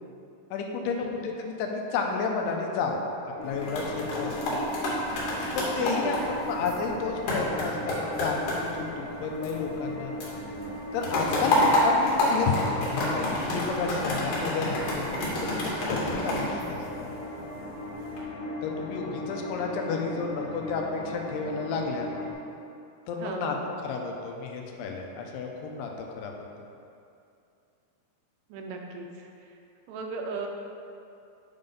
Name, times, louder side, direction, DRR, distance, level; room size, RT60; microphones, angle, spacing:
voice 1, 0.5-3.0 3.4-4.6 5.5-10.1 10.9-15.2 15.6-17.1 18.6-22.1 23.1-23.6 23.8-26.5, left 4 dB, 85° left, 1 dB, 2.7 m, -31 dB
sound 1, 3.4-9.9 10.2-17.4 17.9-18.2, left 1 dB, 55° left, 2.6 m, -29 dB
sound 2, 3.4-22.3, left 1 dB, 40° left, 1.8 m, -38 dB
voice 2, 5.9-6.4 16.3-16.7 23.2-23.6 28.5-29.1 29.9-30.5, right 4 dB, 90° right, 2 dB, 2.9 m, -37 dB
8.9 x 3.9 x 5.2 m, 2.6 s
omnidirectional pair, 4.7 m